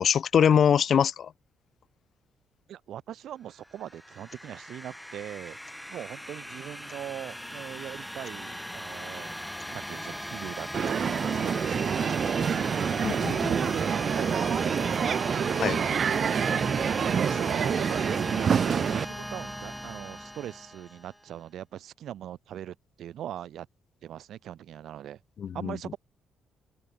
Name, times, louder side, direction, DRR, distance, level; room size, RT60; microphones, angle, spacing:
voice 1, 0.0-1.3 13.0-13.5 15.6-15.8 25.4-25.7, left 8 dB, 55° left, 0.6 m, -23 dB
voice 2, 2.7-5.6 5.9-9.4 9.7-11.8 13.5-16.6 17.0-18.1 18.4-23.7 24.0-25.2 25.5-26.0, right 11 dB, 75° right, 3.6 m, -40 dB
sound 1, 3.6-21.2, equal, ahead, 3.5 m, -38 dB
sound 2, 4.3-4.5 4.7-4.8 5.6-6.0 6.7-7.2 8.2-8.5 9.5-9.8 10.8-11.1 11.9-12.3, left 5 dB, 40° left, 7.6 m, -58 dB
Crowd, 10.7-19.0, right 7 dB, 50° right, 0.8 m, -27 dB
open air
cardioid pair, 90°, 0 cm